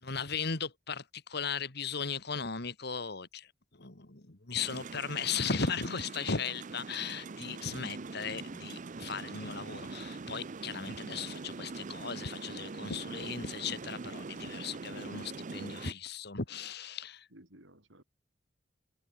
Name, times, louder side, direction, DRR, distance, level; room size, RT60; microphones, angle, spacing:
voice 1, 0.0-17.3, left 5 dB, 60° left, 2.3 m, -37 dB
sound 1, 4.5-15.9, right 3 dB, 45° right, 0.6 m, -43 dB
voice 2, 7.7-8.1 17.3-18.0, right 1 dB, 85° right, 7.8 m, -55 dB
head